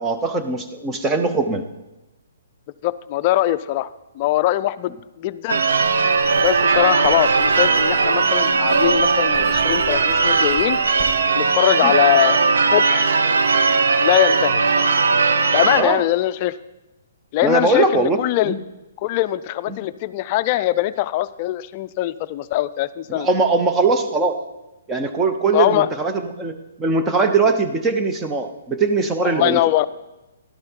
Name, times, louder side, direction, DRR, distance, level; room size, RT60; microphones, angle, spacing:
voice 1, 0.0-1.6 11.8-11.9 15.7-16.0 17.4-18.2 18.4-18.6 19.7-19.8 23.1-24.4 24.9-29.6, right 3 dB, 15° right, 6 dB, 0.7 m, -20 dB
voice 2, 2.8-3.9 4.2-5.6 6.4-10.8 11.3-12.4 12.7-13.1 14.0-14.9 15.5-16.5 17.3-18.5 19.0-23.3 25.5-25.9 29.2-29.9, left 15 dB, 35° left, 15 dB, 0.4 m, -21 dB
Church bell / Car / Alarm, 5.5-15.8, right 4 dB, 80° right, 0.7 m, -18 dB
Writing, 5.7-11.2, left 4 dB, 10° left, 2.4 m, -41 dB
12.0 x 8.7 x 4.4 m, 1.0 s
hypercardioid pair, 145°, 0 cm